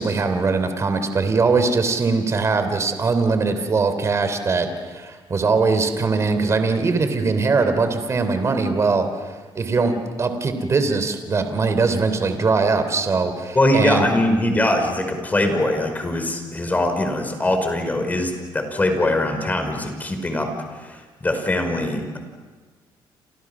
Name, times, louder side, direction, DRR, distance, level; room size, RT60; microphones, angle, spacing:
voice 1, 0.0-9.1 9.5-14.1, right 4 dB, 35° right, 8 dB, 3.3 m, -21 dB
voice 2, 13.6-20.5 20.8-22.2, left 1 dB, 20° left, 5 dB, 5.3 m, -22 dB
30.0 x 27.5 x 6.1 m, 1.4 s
cardioid pair, 110°, 9 cm